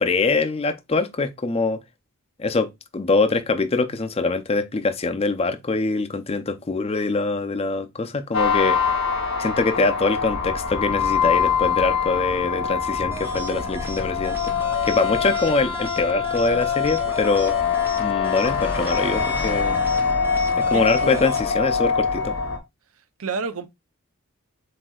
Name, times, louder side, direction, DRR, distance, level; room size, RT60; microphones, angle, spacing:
voice 1, 0.0-1.8 2.4-8.8 9.4-14.5 14.9-17.6 18.0-19.8 20.5-22.4, left 3 dB, 25° left, 0.5 m, -23 dB
sound 1, 8.3-22.6, left 6 dB, 65° left, 1.0 m, -24 dB
sound 2, 13.1-21.4, right 2 dB, 10° right, 0.7 m, -37 dB
voice 2, 20.7-21.3 23.2-23.7, right 4 dB, 75° right, 0.6 m, -30 dB
7.5 x 2.7 x 2.3 m
head